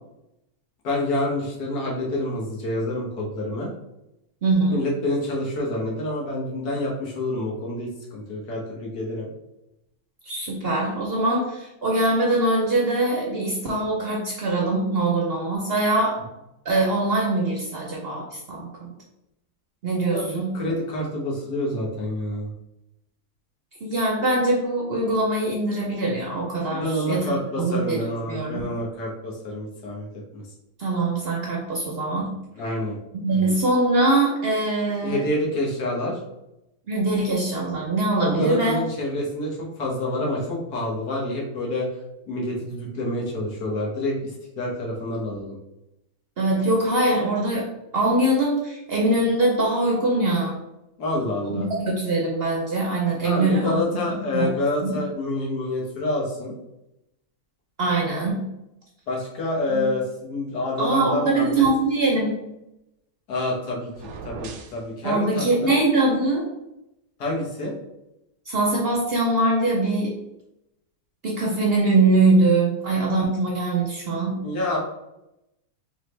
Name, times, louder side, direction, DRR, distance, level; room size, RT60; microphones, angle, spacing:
voice 1, 0.8-3.7 4.7-9.3 20.1-22.5 26.7-30.1 30.3-30.4 32.6-33.0 33.3-33.6 35.0-36.2 38.2-41.9 42.3-45.5 51.0-51.7 53.2-56.6 59.1-61.7 63.3-63.9 64.2-65.7 67.2-67.7 74.4-74.8, left 1 dB, 80° left, -3 dB, 1.7 m, -27 dB
voice 2, 4.4-4.9 10.2-16.2 16.6-18.9 19.8-20.6 23.8-27.2 27.6-28.0 28.3-28.6 30.8-32.3 33.2-35.2 36.9-38.7 46.4-47.7 47.9-50.6 51.5-53.7 54.3-54.5 54.8-55.0 57.8-58.4 59.7-59.9 60.8-62.5 65.0-66.5 68.5-70.1 71.2-74.4, right 2 dB, 55° right, -2 dB, 0.7 m, -22 dB
sound 1, 63.9-64.8, right 5 dB, 80° right, 1.2 m, -38 dB
3.6 x 3.5 x 3.2 m, 0.89 s
omnidirectional pair, 1.7 m